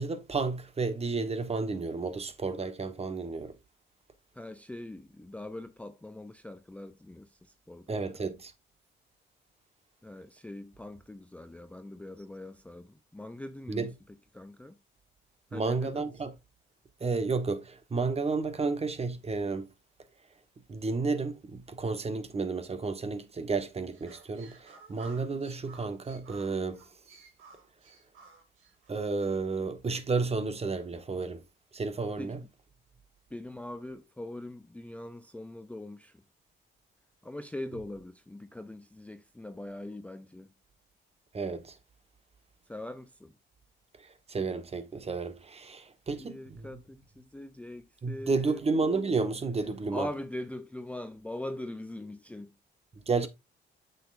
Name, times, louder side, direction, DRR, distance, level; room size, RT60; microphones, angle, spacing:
voice 1, 0.0-3.5 7.9-8.5 13.7-13.9 15.5-16.3 17.0-19.7 20.7-26.8 28.9-31.4 31.7-32.4 41.3-41.8 44.0-46.8 48.0-50.1 53.1-53.3, right 4 dB, 30° right, 1.1 m, -32 dB
voice 2, 4.3-8.2 10.0-13.9 14.3-14.8 15.5-16.0 25.3-25.4 32.2-32.5 33.3-36.2 37.2-40.5 42.7-43.3 46.2-48.6 49.9-52.5, left 1 dB, 5° left, 0.5 m, -42 dB
sound 1, 23.9-29.0, right 5 dB, 85° right, 2.5 m, -53 dB
7.6 x 6.7 x 2.5 m
cardioid pair, 90°, 20 cm